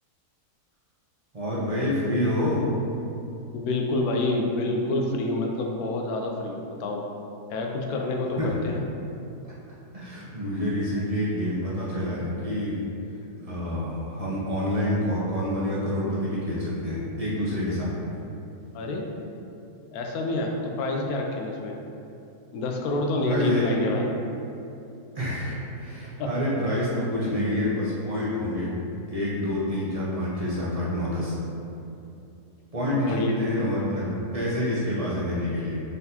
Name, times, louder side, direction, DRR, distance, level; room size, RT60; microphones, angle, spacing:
voice 1, 1.3-2.6 8.4-8.6 9.4-9.5 9.9-12.9 13.4-17.9 23.2-23.7 25.1-28.7 29.1-31.4 32.7-35.8, left 1 dB, 40° right, -8 dB, 0.5 m, -27 dB
voice 2, 3.5-7.0 7.5-8.8 18.7-19.0 19.9-21.8 22.5-24.1 26.2-26.3 32.9-33.4, left 2 dB, 75° left, 1 dB, 1.0 m, -28 dB
3.9 x 3.9 x 2.8 m, 2.7 s
omnidirectional pair, 1.7 m